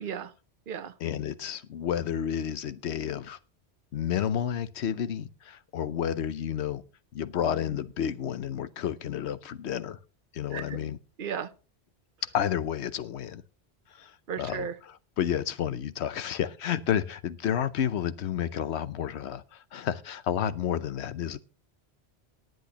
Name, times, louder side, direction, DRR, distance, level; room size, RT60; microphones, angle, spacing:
voice 1, 0.0-0.3 0.7-0.9 10.5-10.8 11.2-11.5 14.3-14.7, right 7 dB, 55° right, 0.9 m, -34 dB
voice 2, 1.0-3.4 3.9-6.8 7.1-10.0 10.3-11.0 12.3-13.4 13.9-21.4, left 9 dB, 75° left, 1.0 m, -31 dB
18.5 x 9.2 x 2.9 m
omnidirectional pair, 1.1 m